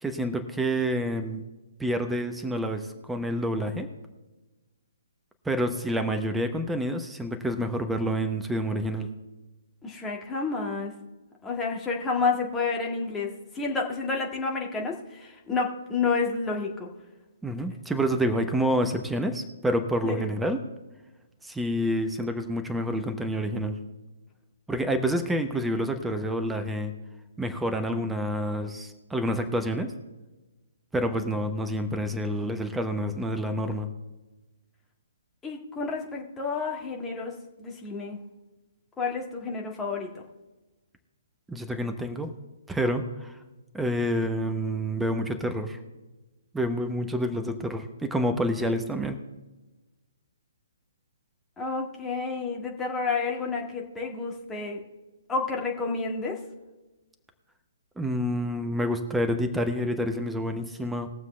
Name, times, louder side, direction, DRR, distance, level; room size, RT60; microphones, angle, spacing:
voice 1, 0.0-1.4 1.8-3.9 5.4-9.1 17.4-20.6 21.4-23.8 24.7-26.9 27.4-29.9 30.9-33.9 41.5-42.4 42.7-43.3 43.7-45.8 46.5-49.2 58.0-61.1, equal, 5° right, 7 dB, 0.9 m, -28 dB
voice 2, 9.8-10.9 11.4-16.9 20.0-20.3 35.4-38.2 39.0-40.1 51.6-54.8 55.3-56.4, left 4 dB, 10° left, -1 dB, 1.8 m, -30 dB
20.5 x 7.2 x 3.3 m, 1.1 s
figure-of-eight pair, 130°, 0 cm